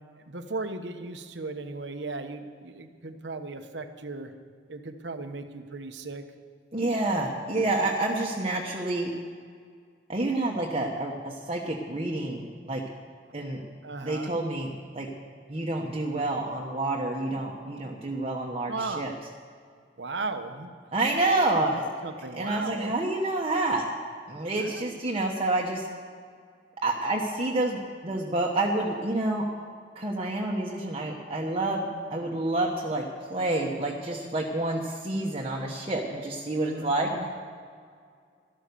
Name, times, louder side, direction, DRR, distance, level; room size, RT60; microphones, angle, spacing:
voice 1, 0.3-4.3 4.7-6.2 13.8-14.3 18.7-19.1 20.0-20.7 21.2-22.9 24.6-24.9 36.6-37.3, right 3 dB, 80° right, 7 dB, 1.1 m, -37 dB
voice 2, 6.7-9.1 10.1-12.8 13.3-13.6 14.0-14.7 14.9-15.1 15.5-19.1 20.9-21.9 22.3-23.9 24.3-25.8 26.8-29.5 29.9-37.1, right 2 dB, 35° right, -2 dB, 1.2 m, -28 dB
12.5 x 12.5 x 6.9 m, 2.1 s
head